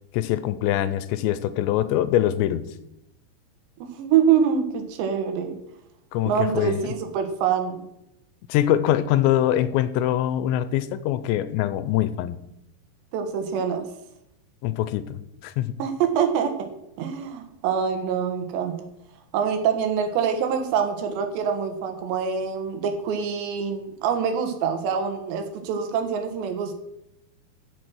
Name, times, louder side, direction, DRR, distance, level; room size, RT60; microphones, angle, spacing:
voice 1, 0.1-2.7 6.1-6.9 8.5-12.4 14.6-15.7, left 12 dB, 85° left, 14 dB, 2.9 m, -23 dB
voice 2, 3.8-5.6 6.3-7.8 13.1-13.9 15.8-16.7 17.0-18.7 19.3-26.7, right 7 dB, 75° right, 6 dB, 3.6 m, -25 dB
15.0 x 6.6 x 6.2 m, 0.84 s
omnidirectional pair, 5.2 m